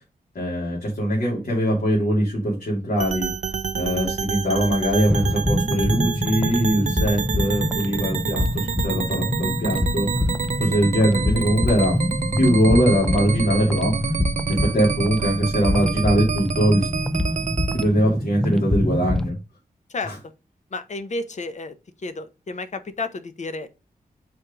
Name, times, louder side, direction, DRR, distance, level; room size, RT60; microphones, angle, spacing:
voice 1, 0.3-10.3 10.6-12.0 12.4-14.2 14.5-16.9 17.7-19.4 20.0-20.2, equal, 65° left, 2.7 m, -22 dB
sound 1, 3.0-17.8, right 6 dB, 50° right, 0.5 m, -28 dB
sound 2, 5.1-19.3, left 1 dB, 5° left, 0.5 m, -26 dB
voice 2, 20.7-21.7 22.0-23.7, left 3 dB, 45° left, 0.9 m, -31 dB
4.9 x 4.2 x 5.0 m
wide cardioid pair, 125°, 16 cm